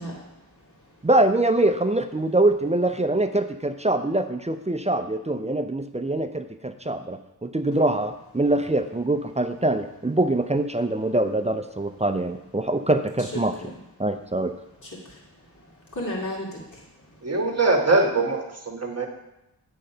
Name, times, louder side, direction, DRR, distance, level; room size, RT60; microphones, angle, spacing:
voice 1, 0.0-1.1 13.2-13.8 14.8-17.4, left 1 dB, 50° left, -5 dB, 2.4 m, -37 dB
voice 2, 1.0-13.5 14.0-14.5, right 2 dB, 15° right, 8 dB, 0.5 m, -24 dB
voice 3, 17.2-19.1, right 3 dB, 40° right, 3 dB, 1.3 m, -22 dB
8.4 x 3.9 x 5.5 m, 0.89 s
wide cardioid pair, 60°, 39 cm